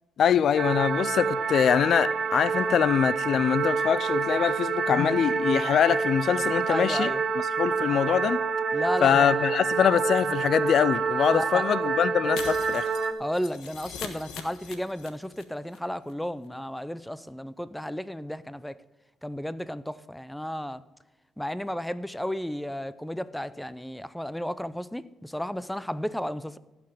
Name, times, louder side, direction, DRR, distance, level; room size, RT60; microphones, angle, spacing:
voice 1, 0.2-7.1 7.6-8.4 9.0-12.9, left 8 dB, 60° left, 0.4 m, -23 dB
sound 1, 0.6-13.1, right 5 dB, 45° right, 0.9 m, -27 dB
voice 2, 6.7-7.2 8.7-9.7 11.3-11.6 12.2-12.3 13.2-18.8 19.2-20.8 21.4-26.6, equal, 5° left, 0.5 m, -33 dB
Shatter, 12.4-15.4 15.7-15.8 16.1-16.2, left 7 dB, 85° left, 1.2 m, -41 dB
15.5 x 5.9 x 5.0 m
cardioid pair, 90°, 0 cm